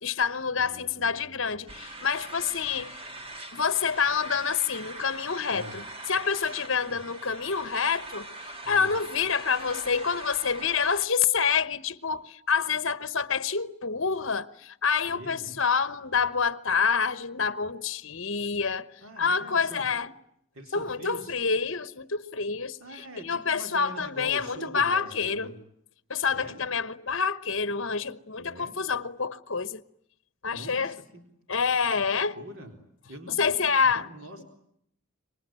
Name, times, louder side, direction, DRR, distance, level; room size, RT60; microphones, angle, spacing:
voice 1, 0.0-2.9 3.5-5.8 6.1-8.3 8.7-18.9 19.2-20.1 20.7-25.6 26.1-29.8 30.4-31.0 31.5-32.4 33.4-34.1, left 6 dB, 60° left, 1.1 m, -27 dB
voice 2, 0.5-1.7 5.5-5.8 6.9-7.0 8.6-9.0 15.1-15.6 19.0-19.8 20.5-21.3 22.8-25.6 26.3-26.6 28.4-28.8 30.5-31.2 32.0-32.7 33.1-34.4, right 1 dB, 80° right, 3.9 m, -44 dB
sound 1, 1.7-11.1, right 2 dB, 25° right, 1.9 m, -42 dB
27.0 x 24.0 x 9.0 m
head